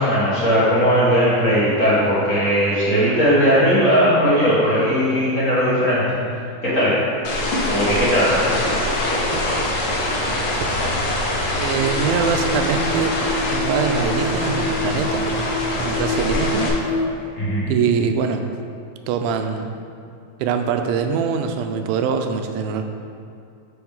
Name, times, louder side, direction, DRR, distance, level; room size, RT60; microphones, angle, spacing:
voice 1, 0.0-6.0 6.6-7.0 7.7-8.7 17.4-17.7, equal, 40° left, -9 dB, 1.0 m, -18 dB
sound 1, 7.2-16.7, left 1 dB, 65° left, 2.0 m, -24 dB
sound 2, 8.5-17.0, left 1 dB, 60° right, 0.5 m, -37 dB
voice 2, 11.6-13.2 13.5-15.3 15.8-16.7 17.7-18.4 19.1-19.8 20.4-22.8, right 6 dB, 85° right, 6 dB, 2.3 m, -23 dB
sound 3, 11.8-17.1, left 2 dB, 90° left, 2.7 m, -28 dB
7.7 x 5.9 x 3.6 m, 2.5 s
omnidirectional pair, 4.2 m